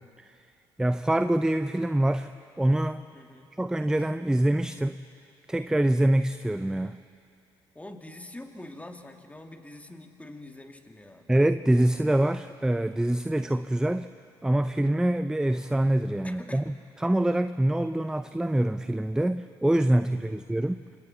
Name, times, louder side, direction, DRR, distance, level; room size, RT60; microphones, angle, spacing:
voice 1, 0.8-2.3 2.6-3.0 3.6-5.0 5.5-7.0 11.3-14.1 14.4-16.6 17.0-20.8, right 1 dB, 5° right, 12 dB, 0.6 m, -25 dB
voice 2, 3.1-3.5 7.7-11.3 16.2-16.7 20.1-20.4, left 1 dB, 10° left, 4 dB, 2.2 m, -45 dB
26.5 x 26.5 x 4.2 m, 2.5 s
hypercardioid pair, 55°, 13 cm